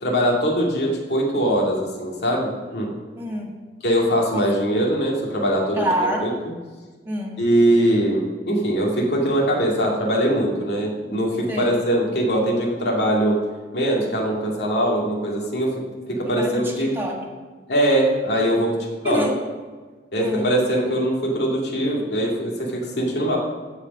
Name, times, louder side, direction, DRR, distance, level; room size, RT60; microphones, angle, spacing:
voice 1, 0.0-2.9 3.8-5.9 6.2-6.3 7.4-13.4 13.7-15.7 16.1-16.9 17.7-18.8 19.0-19.2 20.1-23.4, right 1 dB, 65° left, -2 dB, 2.4 m, -21 dB
voice 2, 3.2-3.6 5.7-6.3 7.0-7.4 11.5-11.8 16.2-17.2 19.0-19.4 20.2-20.5, equal, 15° right, -1 dB, 1.5 m, -26 dB
14.5 x 5.1 x 5.4 m, 1.4 s
head